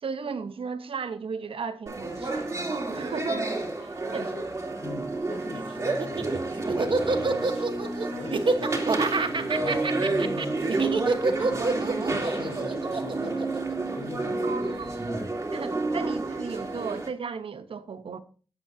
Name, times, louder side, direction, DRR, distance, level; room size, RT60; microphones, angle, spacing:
voice 1, 0.0-4.3 14.4-14.9 15.5-18.2, right 5 dB, 90° right, 1.0 m, -36 dB
sound 1, 1.9-17.1, right 2 dB, 35° right, 3.0 m, -30 dB
voice 2, 4.1-4.5 4.8-13.5 13.9-15.0, left 3 dB, 90° left, 1.5 m, -41 dB
Laughter, 5.9-14.3, right 3 dB, 65° right, 1.2 m, -27 dB
16.5 x 7.7 x 2.7 m
wide cardioid pair, 70°, 9 cm